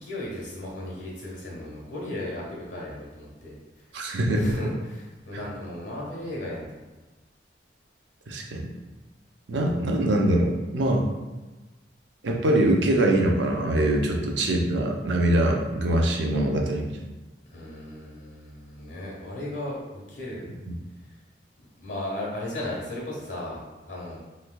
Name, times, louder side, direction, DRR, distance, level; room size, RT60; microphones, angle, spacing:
voice 1, 0.0-3.5 4.4-6.7 17.5-20.4 21.8-24.2, left 1 dB, 85° left, -3 dB, 1.2 m, -35 dB
voice 2, 3.9-4.6 5.3-5.4 8.3-8.7 9.5-11.1 12.2-17.0 20.7-20.8, right 1 dB, 85° right, 1 dB, 0.5 m, -23 dB
3.3 x 3.2 x 2.2 m, 1.2 s
head